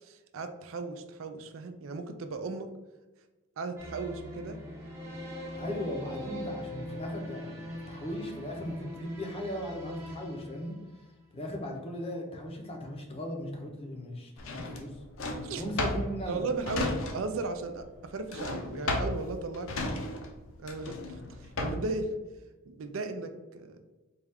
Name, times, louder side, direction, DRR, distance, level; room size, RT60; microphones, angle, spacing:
voice 1, 0.0-2.7 3.6-4.6 15.4-15.6 16.3-20.2 20.6-22.1 22.7-23.8, right 3 dB, 65° right, 7 dB, 0.4 m, -36 dB
sound 1, 3.8-11.3, left 1 dB, 10° right, 0.7 m, -42 dB
voice 2, 5.5-10.7 11.3-15.0 15.6-16.4, equal, 25° left, 2 dB, 0.6 m, -37 dB
Drawer open or close, 14.4-17.5 17.7-22.0, left 2 dB, 70° left, 0.6 m, -34 dB
4.1 x 2.3 x 3.4 m, 1.1 s
head